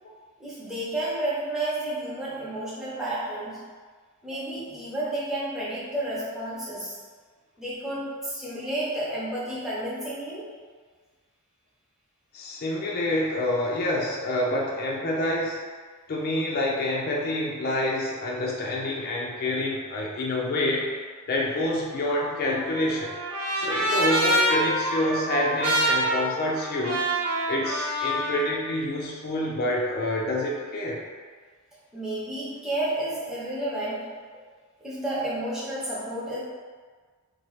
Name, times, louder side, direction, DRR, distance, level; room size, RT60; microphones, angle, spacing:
voice 1, 0.4-3.6 4.2-7.0 7.6-10.5 31.9-34.1 34.8-36.4, right 1 dB, ahead, -9 dB, 0.7 m, -31 dB
voice 2, 12.3-15.6 16.1-20.9 21.3-23.1 23.6-27.0 27.5-31.0, left 1 dB, 45° left, -3 dB, 0.4 m, -27 dB
Trumpet, 22.2-28.5, right 1 dB, 70° right, 0.5 m, -26 dB
2.8 x 2.3 x 3.1 m, 1.5 s
head